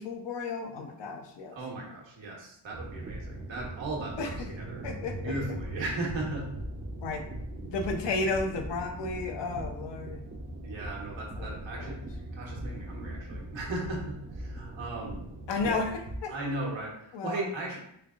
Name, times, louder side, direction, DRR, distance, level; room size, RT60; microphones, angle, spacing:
voice 1, 0.0-1.6 4.2-4.5 4.8-5.3 7.0-7.2 7.6-10.2 11.4-12.0 15.5-16.3 17.1-17.5, left 3 dB, 65° left, 5 dB, 0.7 m, -33 dB
voice 2, 1.5-4.3 4.6-4.9 5.2-6.4 10.6-12.0 12.3-15.3 15.6-15.8 16.3-17.8, right 2 dB, 75° right, -2 dB, 1.0 m, -36 dB
sound 1, 2.7-16.2, right 1 dB, 25° right, 0.4 m, -40 dB
3.3 x 3.3 x 2.4 m, 0.73 s
cardioid pair, 80°, 46 cm